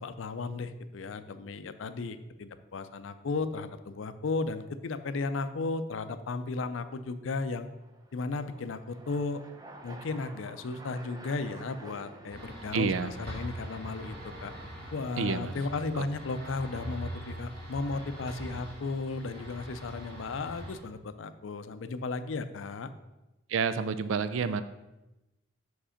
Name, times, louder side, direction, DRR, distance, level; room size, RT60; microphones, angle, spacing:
voice 1, 0.0-7.7 8.1-9.4 9.8-14.5 14.9-22.9, left 3 dB, 75° left, 11 dB, 0.5 m, -35 dB
sound 1, 2.7-3.2 7.0-21.6, right 1 dB, 20° right, 0.6 m, -53 dB
sound 2, 12.3-20.8, right 1 dB, 55° right, 2.0 m, -42 dB
voice 2, 12.7-13.1 15.2-15.5 15.9-16.1 23.5-24.6, right 5 dB, 80° right, 12 dB, 0.4 m, -29 dB
6.1 x 5.0 x 5.0 m, 1.0 s
head